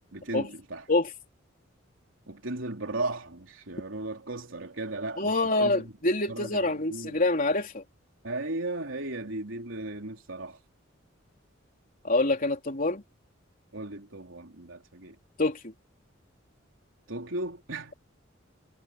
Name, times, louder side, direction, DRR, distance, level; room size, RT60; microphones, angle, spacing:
voice 1, 0.1-0.9 2.3-5.9 6.3-7.2 8.2-10.6 13.7-15.2 17.1-17.9, right 2 dB, 85° right, 3.6 m, -36 dB
voice 2, 5.2-7.8 12.0-13.0 15.4-15.7, left 2 dB, 45° left, 3.4 m, -26 dB
head